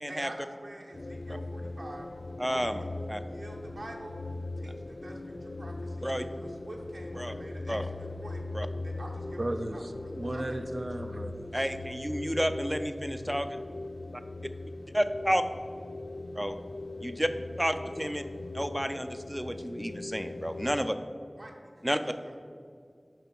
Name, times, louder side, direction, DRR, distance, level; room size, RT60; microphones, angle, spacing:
voice 1, 0.1-2.1 2.4-4.2 4.6-10.6 21.4-22.4, right 1 dB, 85° right, -1 dB, 1.1 m, -46 dB
sound 1, 0.9-20.9, left 2 dB, 75° left, 0.3 m, -40 dB
voice 2, 2.4-2.8 3.1-3.2 6.0-6.2 7.2-7.3 7.7-7.9 8.5-8.7 11.5-13.6 14.9-15.4 16.3-16.6 17.0-17.3 17.6-18.2 18.5-21.0 21.8-22.0, equal, 5° right, 9 dB, 0.5 m, -30 dB
voice 3, 9.4-11.6, right 1 dB, 55° right, 6 dB, 0.5 m, -35 dB
6.9 x 5.5 x 6.0 m, 2.3 s
wide cardioid pair, 50°, 0 cm